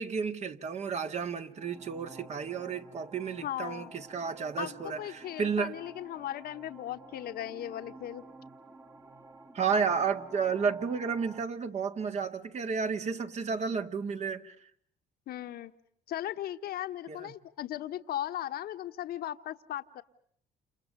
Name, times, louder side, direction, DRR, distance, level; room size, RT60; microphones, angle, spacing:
voice 1, 0.0-5.8 9.5-14.5 17.1-17.3, right 5 dB, 40° right, 1.8 m, -32 dB
sound 1, 1.4-11.4, right 2 dB, 15° right, 1.5 m, -52 dB
voice 2, 3.4-3.9 4.6-8.2 15.3-15.7 16.1-20.0, left 12 dB, 65° left, 1.3 m, -37 dB
29.5 x 28.5 x 6.8 m
cardioid pair, 110°, 17 cm